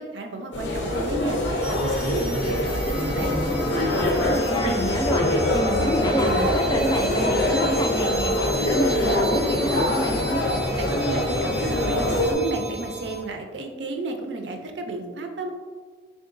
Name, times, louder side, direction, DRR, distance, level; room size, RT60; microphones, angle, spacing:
voice 1, 0.0-1.4 1.7-3.4 10.8-15.5, right 2 dB, 80° right, 4 dB, 0.5 m, -32 dB
sound 1, 0.5-12.3, left 1 dB, 90° left, 0.7 m, -24 dB
sound 2, 1.6-13.2, equal, 5° right, 0.7 m, -31 dB
voice 2, 4.1-10.4, equal, 20° left, 3 dB, 0.3 m, -27 dB
3.7 x 3.7 x 2.5 m, 1.5 s
head